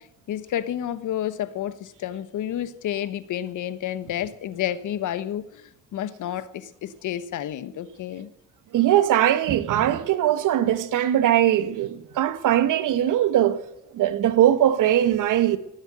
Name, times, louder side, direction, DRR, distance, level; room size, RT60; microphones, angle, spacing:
voice 1, 0.0-8.3, left 11 dB, 75° left, 1.3 m, -30 dB
voice 2, 8.7-13.6 13.9-15.6, right 11 dB, 80° right, 1.3 m, -20 dB
18.5 x 8.0 x 8.8 m
cardioid pair, 95°, 31 cm